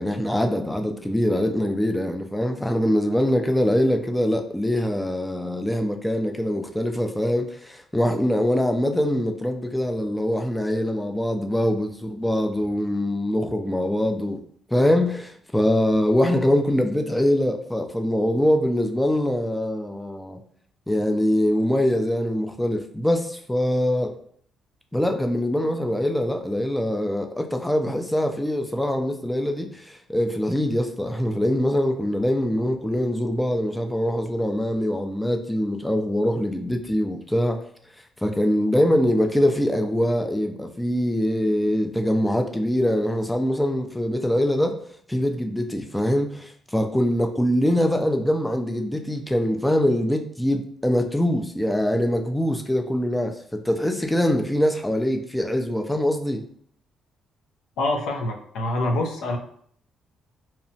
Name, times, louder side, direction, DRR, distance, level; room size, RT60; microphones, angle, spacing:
voice 1, 0.0-14.4 14.7-20.4 20.9-24.2 24.9-37.6 38.2-44.8 45.1-56.5, equal, 5° left, 0.3 m, -23 dB
voice 2, 57.8-59.4, left 2 dB, 85° left, 0.4 m, -25 dB
2.8 x 2.1 x 2.7 m
cardioid pair, 90°, 0 cm